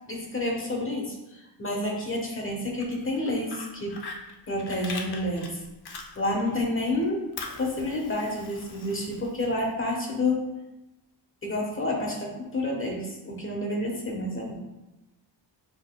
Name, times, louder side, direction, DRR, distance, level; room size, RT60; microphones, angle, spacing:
voice 1, 0.1-4.0 4.5-5.6 6.2-7.2 7.6-10.5 11.4-14.6, left 1 dB, 25° left, 0 dB, 1.2 m, -29 dB
Fire, 2.6-6.5 6.9-9.7, left 4 dB, 55° left, 0.7 m, -42 dB
6.6 x 3.2 x 2.3 m, 0.99 s
wide cardioid pair, 95°, 46 cm